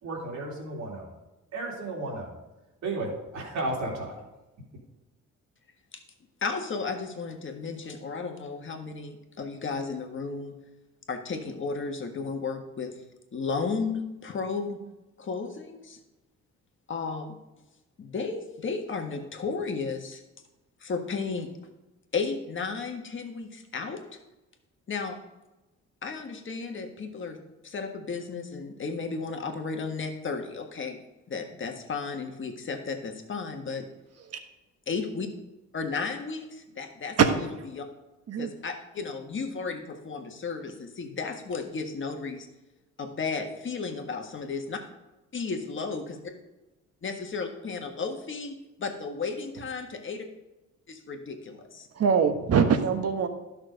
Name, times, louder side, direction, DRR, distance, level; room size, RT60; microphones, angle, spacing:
voice 1, 0.0-1.1 1.5-2.4 2.8-4.1, right 2 dB, 70° right, -2 dB, 3.1 m, -33 dB
voice 2, 6.4-10.6 11.1-12.9 13.3-14.8 15.2-16.0 16.9-17.4 18.0-20.2 20.8-21.5 22.1-24.0 24.9-25.2 26.0-27.4 27.6-31.0 31.3-33.8 34.9-35.3 35.7-37.2 37.7-37.8 38.4-42.5 43.0-44.8 45.3-46.2 47.0-50.3 50.9-51.9, left 4 dB, 40° left, 4 dB, 1.6 m, -34 dB
voice 3, 51.9-53.3, right 6 dB, 55° right, 7 dB, 1.3 m, -22 dB
11.5 x 6.3 x 5.1 m, 1.0 s
cardioid pair, 90°, 30 cm